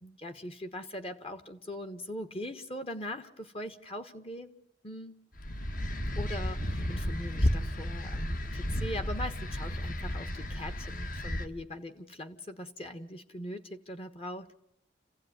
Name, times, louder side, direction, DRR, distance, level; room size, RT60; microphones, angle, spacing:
voice 1, 0.0-4.5 4.8-5.2 6.1-14.5, left 1 dB, 30° left, 9 dB, 1.3 m, -41 dB
sound 1, 5.4-11.5, left 1 dB, 45° left, 1.6 m, -33 dB
29.0 x 16.0 x 9.6 m, 0.82 s
head